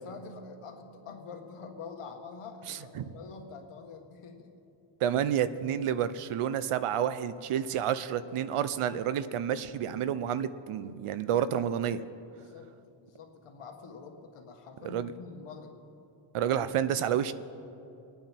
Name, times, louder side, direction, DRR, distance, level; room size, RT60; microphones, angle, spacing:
voice 1, 0.0-4.5 5.7-5.8 8.9-9.0 12.3-12.7 13.0-15.8, left 5 dB, 90° left, 3 dB, 1.6 m, -46 dB
voice 2, 2.7-3.1 5.0-12.0 14.8-15.1 16.3-17.3, right 9 dB, 90° right, 14 dB, 0.8 m, -30 dB
26.5 x 9.2 x 4.4 m, 2.8 s
cardioid pair, 100°, 50 cm